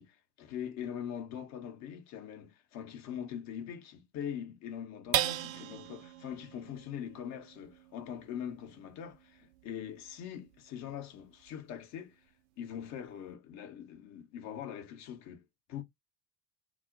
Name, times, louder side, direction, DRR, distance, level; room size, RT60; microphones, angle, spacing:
voice 1, 0.0-12.2 12.6-15.8, left 9 dB, 35° left, 0.7 m, -42 dB
sound 1, 5.1-11.8 12.3-12.4 12.8-13.3, right 13 dB, 60° right, 0.5 m, -39 dB
2.4 x 2.0 x 3.7 m
figure-of-eight pair, 65°, 46 cm